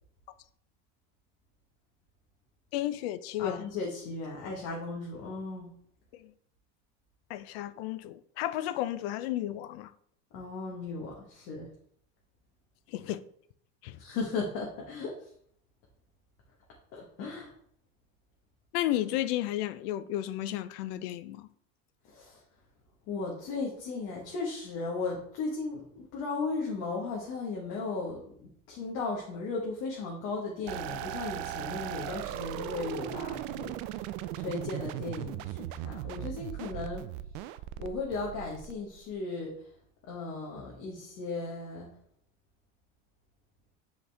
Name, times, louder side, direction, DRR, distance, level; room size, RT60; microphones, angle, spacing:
voice 1, 2.7-3.7 6.1-6.3 7.3-9.9 12.9-13.2 13.8-14.0 18.7-21.5, left 13 dB, 75° left, 0.6 m, -33 dB
voice 2, 3.4-5.7 10.3-11.7 14.0-15.3 16.9-17.5 22.0-22.4 23.1-34.0 34.4-37.1 37.8-39.7 40.0-41.9, left 3 dB, 50° left, 1.4 m, -36 dB
sound 1, 30.7-39.1, right 13 dB, 55° right, 0.4 m, -38 dB
7.8 x 4.1 x 3.4 m
cardioid pair, 170°, 31 cm